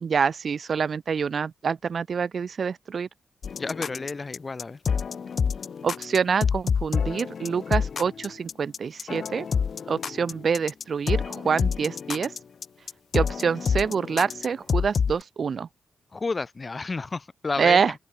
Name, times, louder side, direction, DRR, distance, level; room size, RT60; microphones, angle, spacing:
voice 1, 0.0-3.1 5.8-9.5 9.9-12.3 13.1-15.7 17.6-17.9, right 6 dB, 55° right, 0.4 m, -26 dB
sound 1, 3.4-15.2, left 6 dB, 60° left, 1.3 m, -28 dB
voice 2, 3.6-4.8 16.1-17.8, left 3 dB, 35° left, 1.4 m, -31 dB
cardioid pair, 80°, 0 cm